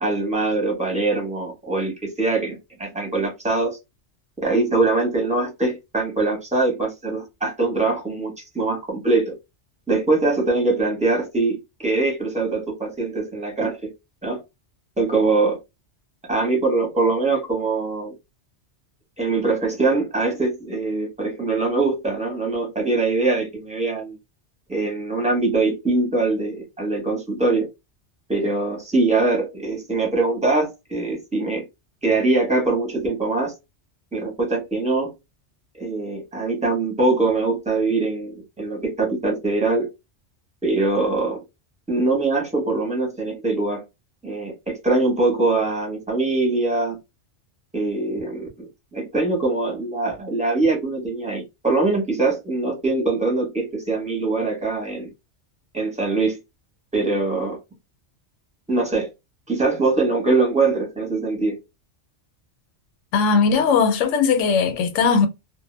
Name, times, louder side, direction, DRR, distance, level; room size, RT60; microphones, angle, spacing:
voice 1, 0.0-3.8 4.4-9.3 9.9-13.9 14.2-14.4 15.0-15.6 16.3-18.1 19.2-24.2 24.7-27.7 28.3-31.6 32.0-33.5 34.1-35.1 35.8-39.9 40.6-41.4 41.9-43.8 44.2-47.0 47.7-55.1 55.7-56.4 56.9-57.6 58.7-59.1 59.5-61.6, right 3 dB, 5° right, 0.7 m, -22 dB
voice 2, 63.1-65.3, left 5 dB, 85° left, 0.9 m, -18 dB
2.1 x 2.0 x 3.1 m
omnidirectional pair, 1.2 m